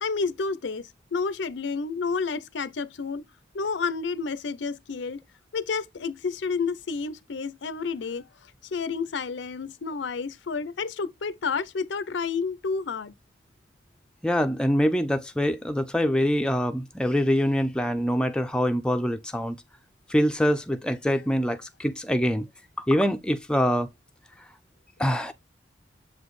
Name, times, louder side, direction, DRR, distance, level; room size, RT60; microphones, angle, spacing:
voice 1, 0.0-3.3 3.5-5.2 5.5-8.3 8.6-13.1, left 5 dB, 75° left, 0.5 m, -30 dB
voice 2, 14.2-19.6 20.1-22.5 22.8-23.9 25.0-25.3, equal, 5° left, 0.4 m, -24 dB
7.6 x 4.1 x 3.1 m
head